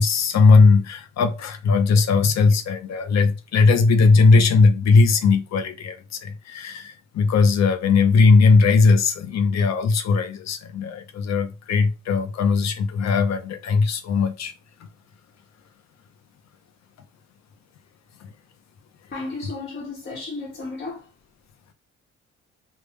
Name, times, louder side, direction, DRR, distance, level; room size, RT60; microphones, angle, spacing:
voice 1, 0.0-14.5, left 4 dB, 60° left, 0.7 m, -18 dB
voice 2, 19.1-21.1, left 3 dB, 35° left, 1.2 m, -33 dB
3.6 x 2.3 x 3.1 m
cardioid pair, 90°, 30 cm